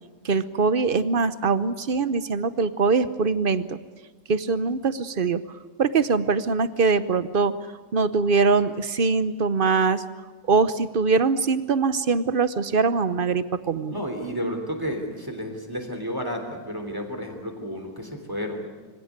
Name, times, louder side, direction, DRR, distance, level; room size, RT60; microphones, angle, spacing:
voice 1, 0.2-3.8 4.3-5.4 5.8-7.5 7.9-10.0 10.5-14.0, right 4 dB, 45° right, 13 dB, 0.7 m, -22 dB
voice 2, 13.9-18.6, equal, 10° right, 4 dB, 3.1 m, -31 dB
25.0 x 17.0 x 9.5 m, 1.3 s
omnidirectional pair, 1.9 m